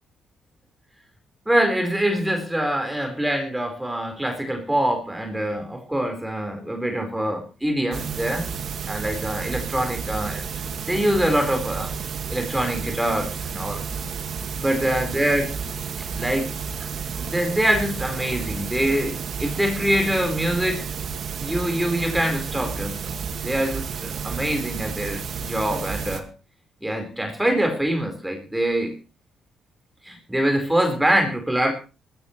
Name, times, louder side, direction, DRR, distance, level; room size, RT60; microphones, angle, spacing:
voice 1, 1.5-8.5 8.9-10.5 10.9-11.9 12.3-13.8 14.6-15.5 16.2-16.5 17.2-20.8 21.4-26.3 26.8-29.0 30.0-31.7, right 1 dB, 10° right, 4 dB, 4.7 m, -24 dB
sound 1, 7.9-26.2, right 6 dB, 60° right, 2.0 m, -31 dB
19.5 x 15.5 x 3.3 m, 0.34 s
cardioid pair, 90°, 0 cm